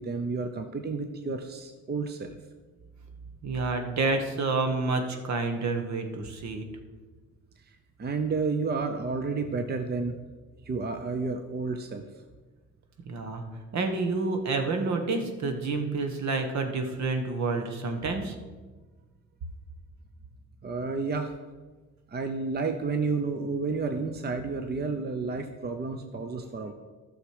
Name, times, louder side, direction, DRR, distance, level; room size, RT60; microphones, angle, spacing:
voice 1, 0.0-2.4 8.0-10.2 10.7-12.1 20.6-21.3 22.1-26.7, right 4 dB, 35° right, 6 dB, 0.8 m, -31 dB
voice 2, 3.4-6.6 13.0-13.4 13.7-18.3, right 3 dB, 65° right, 5 dB, 1.6 m, -29 dB
13.0 x 6.4 x 5.0 m, 1.3 s
cardioid pair, 90°, 30 cm